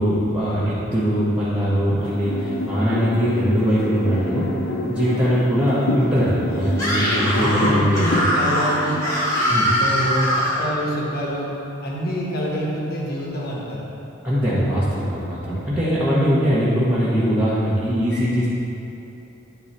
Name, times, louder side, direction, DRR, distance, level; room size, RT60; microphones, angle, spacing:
voice 1, 0.0-4.5 4.9-8.2 9.5-9.7 14.2-18.5, equal, 10° right, -12 dB, 1.0 m, -21 dB
sound 1, 2.0-10.1, left 2 dB, 85° left, 0.6 m, -29 dB
Screaming, 6.7-10.7, equal, 15° left, 1.4 m, -22 dB
voice 2, 6.9-9.0 9.8-11.5 11.8-13.8, equal, 50° left, -4 dB, 1.2 m, -26 dB
10.5 x 3.8 x 4.3 m, 3.0 s
head